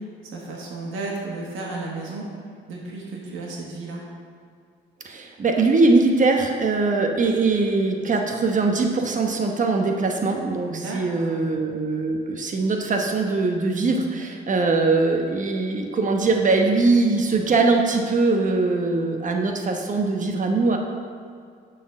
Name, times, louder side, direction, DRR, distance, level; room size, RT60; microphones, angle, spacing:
voice 1, 0.3-2.2 2.7-4.0 10.6-11.4, right 3 dB, 90° right, -2 dB, 1.5 m, -33 dB
voice 2, 5.0-20.8, right 3 dB, 40° right, 3 dB, 1.0 m, -21 dB
6.8 x 4.2 x 6.3 m, 2.2 s
cardioid pair, 90°, 20 cm